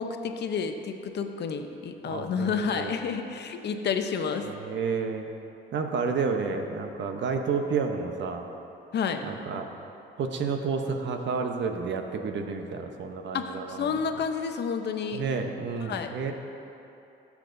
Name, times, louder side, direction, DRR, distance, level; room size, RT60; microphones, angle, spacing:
voice 1, 0.0-4.5 8.9-9.2 13.3-15.2 15.8-16.1, left 6 dB, 60° left, 6 dB, 0.8 m, -30 dB
voice 2, 2.1-2.9 4.5-5.3 5.7-8.4 9.3-9.7 10.2-13.9 15.1-16.3, right 5 dB, 65° right, 5 dB, 0.9 m, -30 dB
16.0 x 7.3 x 2.7 m, 2.9 s
cardioid pair, 90°, 20 cm